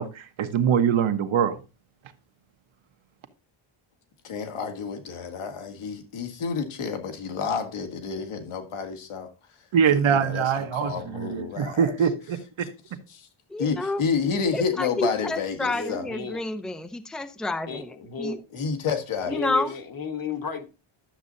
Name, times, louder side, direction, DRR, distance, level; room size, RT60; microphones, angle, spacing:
voice 1, 0.0-1.6 9.7-12.7, right 7 dB, 70° right, 1.2 m, -23 dB
voice 2, 4.2-9.3 10.1-11.9 12.6-12.7 13.1-13.3 13.6-16.1 18.5-19.4, left 5 dB, 75° left, 1.8 m, -30 dB
voice 3, 13.5-14.0 14.5-18.4 19.3-19.7, left 2 dB, ahead, 0.5 m, -29 dB
voice 4, 15.6-16.4 17.7-18.4 19.3-20.6, left 4 dB, 45° left, 1.3 m, -33 dB
12.0 x 7.4 x 2.7 m
wide cardioid pair, 175°, 50 cm